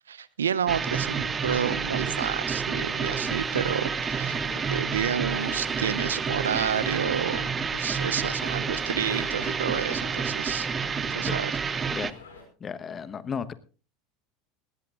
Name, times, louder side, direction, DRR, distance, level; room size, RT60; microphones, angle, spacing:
voice 1, 0.1-4.4 4.7-10.7 11.1-11.5, right 8 dB, 90° right, 19 dB, 0.6 m, -30 dB
sound 1, 0.7-12.1, right 6 dB, 25° right, 0.9 m, -29 dB
sound 2, 1.4-12.4, left 3 dB, 85° left, 5.3 m, -46 dB
voice 2, 12.6-13.5, left 6 dB, 30° left, 14 dB, 1.1 m, -34 dB
19.0 x 16.0 x 2.5 m, 0.36 s
hypercardioid pair, 85°, 0 cm